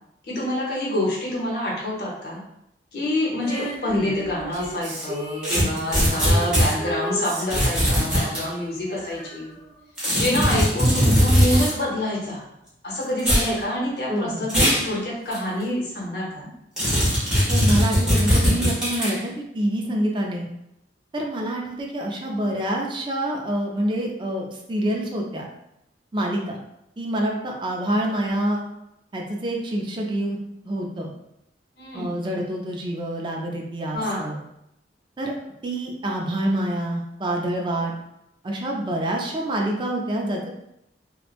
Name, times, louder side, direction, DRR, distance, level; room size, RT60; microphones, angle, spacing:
voice 1, 0.3-2.4 2.9-9.6 10.1-12.4 12.8-16.5 31.8-32.1 33.9-34.3, left 1 dB, 60° left, -5 dB, 0.8 m, -27 dB
Female singing, 3.4-10.4 11.5-11.6, equal, 70° right, 0.7 m, -35 dB
sound 1, 5.4-6.7 7.5-8.4 10.0-11.7 13.2-13.5 14.5-14.9 15.3-15.4 16.8-19.2, equal, 5° right, 1.0 m, -20 dB
voice 2, 14.1-14.4 17.5-20.5 21.1-25.5 26.1-26.6 27.0-28.6 29.1-30.4 30.6-31.1 31.9-34.4 35.2-35.3 35.6-37.9 38.4-40.5, right 1 dB, 25° right, 0 dB, 0.4 m, -26 dB
3.0 x 2.1 x 2.4 m, 0.82 s
head